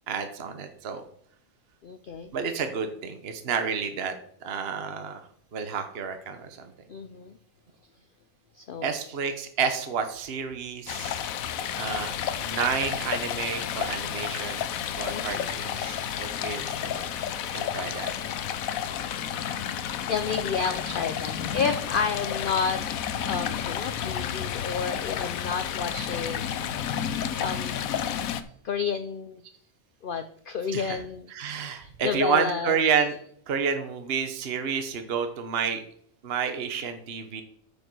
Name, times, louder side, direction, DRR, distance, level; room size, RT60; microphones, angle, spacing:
voice 1, 0.1-1.0 2.3-4.2 4.4-5.2 5.5-6.7 8.8-11.3 11.7-12.1 12.4-14.6 15.0-17.1 17.5-18.1 30.7-31.0 31.3-33.2 33.5-35.8 36.2-37.4, right 6 dB, 50° right, 7 dB, 1.1 m, -30 dB
voice 2, 1.8-2.3 6.9-7.4 8.5-8.9 15.1-15.5 19.6-22.8 23.2-26.7 27.3-28.1 28.6-29.4 30.0-31.3 31.8-32.8, left 5 dB, 60° left, 10 dB, 0.5 m, -31 dB
Stream, 10.9-28.4, left 9 dB, 75° left, 1.1 m, -31 dB
8.9 x 5.4 x 6.2 m, 0.63 s
omnidirectional pair, 1.5 m